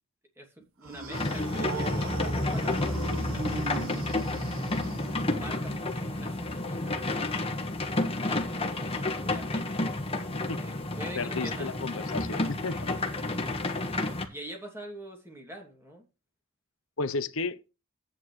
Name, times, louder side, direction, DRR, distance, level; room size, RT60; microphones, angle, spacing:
voice 1, 0.4-4.3 5.1-9.9 10.6-11.7 12.7-13.5 13.9-16.0, equal, 10° right, 2.9 m, -46 dB
sound 1, 0.8-5.6, right 3 dB, 75° right, 1.4 m, -38 dB
sound 2, 1.1-14.3, left 2 dB, 25° left, 1.5 m, -30 dB
voice 2, 11.1-13.0 17.0-17.6, left 3 dB, 70° left, 0.9 m, -33 dB
12.0 x 9.1 x 3.3 m
head